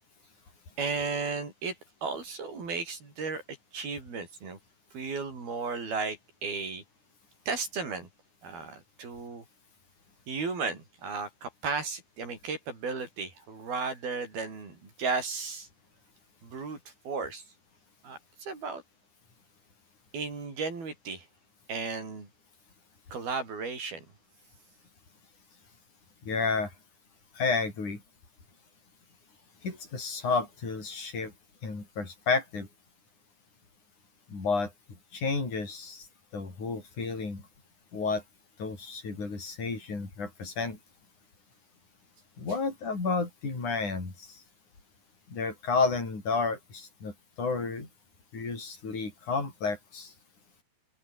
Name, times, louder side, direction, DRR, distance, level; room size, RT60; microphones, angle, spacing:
voice 1, 0.8-4.6 4.9-6.8 7.5-8.1 8.4-9.5 10.3-15.7 16.4-17.5 18.0-18.8 20.1-21.3 21.7-22.3 23.1-24.1, right 4 dB, 70° right, 8.8 m, -35 dB
voice 2, 26.3-26.7 27.4-28.0 29.6-31.3 31.6-32.7 34.3-34.7 35.1-36.1 36.3-37.4 37.9-38.2 38.6-40.8 42.4-44.4 45.3-47.1 47.4-47.9 48.3-50.1, left 4 dB, 50° left, 8.9 m, -31 dB
omnidirectional pair, 4.4 m